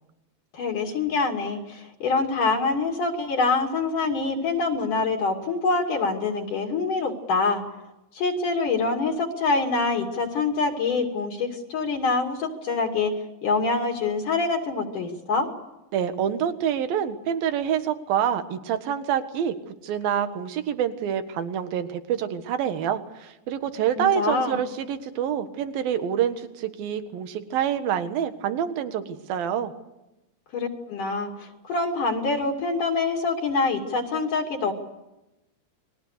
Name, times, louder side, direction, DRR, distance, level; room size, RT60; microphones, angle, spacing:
voice 1, 0.5-7.6 8.1-13.1 13.4-15.5 24.0-24.6 30.5-34.7, left 3 dB, 55° left, 2 dB, 4.0 m, -25 dB
voice 2, 15.9-19.6 19.8-29.7, right 9 dB, 70° right, 9 dB, 3.3 m, -27 dB
30.0 x 22.0 x 6.7 m, 0.95 s
omnidirectional pair, 4.5 m